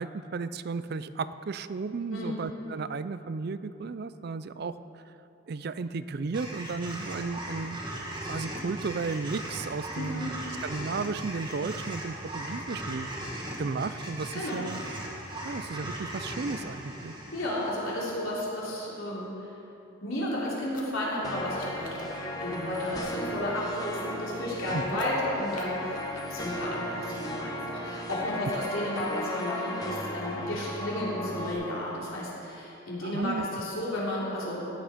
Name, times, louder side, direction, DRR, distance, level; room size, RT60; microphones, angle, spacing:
voice 1, 0.0-4.8 5.5-7.8 8.3-10.3 10.6-13.1 13.3-14.8 15.4-17.1 24.7-24.8 33.0-33.5, right 4 dB, 50° right, 13 dB, 0.4 m, -34 dB
voice 2, 2.1-2.5 10.0-10.3 14.3-14.6 17.3-19.4 20.0-22.1 22.4-26.0 26.3-34.6, left 1 dB, 80° left, -6 dB, 3.6 m, -33 dB
sound 1, 6.3-18.6, right 1 dB, 25° right, 1.8 m, -38 dB
sound 2, 20.4-20.9 21.6-22.1 24.8-25.1 25.5-25.7, left 5 dB, 40° left, 1.5 m, -51 dB
sound 3, 21.2-31.5, equal, 20° left, 1.2 m, -36 dB
16.5 x 8.9 x 5.1 m, 2.8 s
head